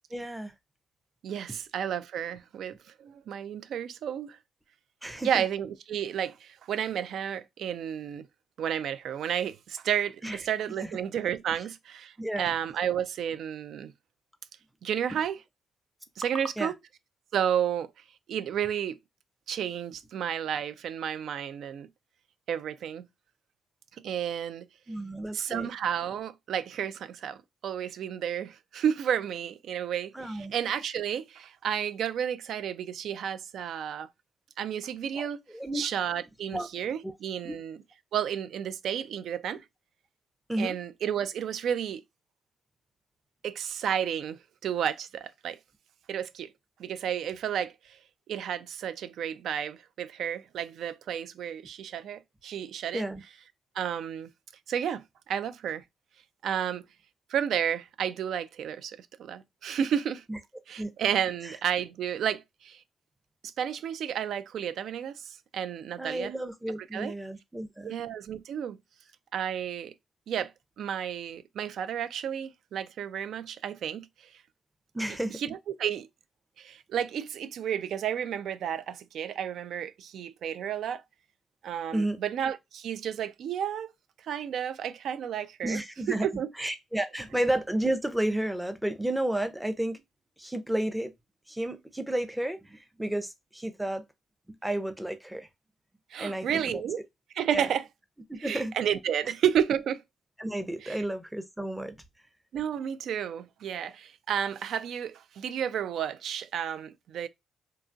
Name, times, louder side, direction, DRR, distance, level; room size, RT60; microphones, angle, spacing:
voice 1, 0.1-0.5 5.0-5.3 10.2-10.4 10.8-11.0 12.2-12.5 16.6-16.7 24.9-25.7 30.1-30.5 35.1-35.9 36.5-36.7 37.0-37.1 37.4-37.6 40.5-40.8 52.9-53.2 60.3-60.4 60.8-60.9 61.4-61.5 66.0-67.9 74.9-75.4 81.9-82.2 85.6-86.3 86.6-90.0 90.4-91.1 91.5-94.0 94.6-95.5 96.2-96.8 97.5-97.7 98.3-98.7 100.4-102.0, right 1 dB, 5° right, 0.5 m, -32 dB
voice 2, 1.2-4.4 5.2-8.3 8.6-13.9 14.8-15.4 16.2-16.7 17.3-17.9 18.3-19.0 19.5-21.9 22.5-23.1 24.0-24.7 25.3-27.4 27.6-34.1 34.6-35.4 35.7-37.8 38.1-39.6 40.6-42.0 43.4-45.6 46.1-46.5 46.8-47.7 48.3-53.1 53.8-54.3 54.7-55.8 56.4-56.8 57.3-60.2 60.7-62.8 63.6-66.3 66.9-67.1 67.8-68.8 69.3-69.9 70.3-70.5 70.8-74.1 75.4-76.1 76.6-81.0 81.6-83.9 84.3-85.8 86.2-86.5 96.1-97.0 97.4-97.8 98.4-100.0 100.8-101.0 102.5-107.3, right 9 dB, 70° right, 0.3 m, -31 dB
2.8 x 2.2 x 2.6 m
cardioid pair, 90°, 0 cm